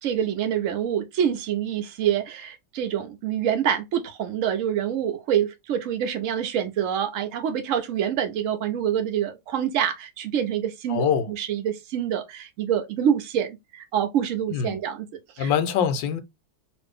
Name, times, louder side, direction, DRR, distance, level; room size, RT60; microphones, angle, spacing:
voice 1, 0.0-15.1 15.4-15.5, right 9 dB, 85° right, 0.7 m, -26 dB
voice 2, 10.9-11.3 14.5-14.8 15.4-16.2, left 8 dB, 75° left, 1.3 m, -23 dB
2.9 x 2.5 x 3.4 m
omnidirectional pair, 2.1 m